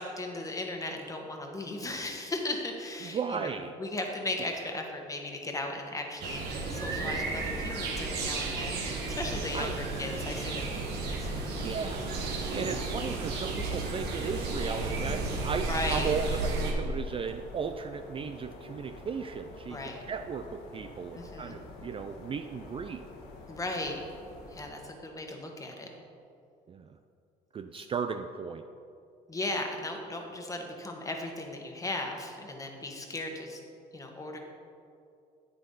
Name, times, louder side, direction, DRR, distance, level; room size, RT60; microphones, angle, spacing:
voice 1, 0.0-6.4 6.7-8.8 9.1-11.8 12.5-12.8 15.6-16.1 19.7-20.0 21.1-21.6 23.5-24.0 24.5-25.9 27.7-27.8 29.3-33.6 33.9-34.4, left 2 dB, 20° left, 2 dB, 1.4 m, -37 dB
voice 2, 3.0-3.7 9.5-9.8 11.6-19.8 20.1-23.0 26.7-26.9 27.5-28.6, right 5 dB, 30° right, 8 dB, 0.4 m, -35 dB
sound 1, 6.2-16.7, right 3 dB, 80° right, 1.6 m, -33 dB
sound 2, 7.1-24.7, left 2 dB, 75° left, 1.6 m, -49 dB
9.5 x 9.0 x 3.9 m, 2.5 s
cardioid pair, 110°, 17 cm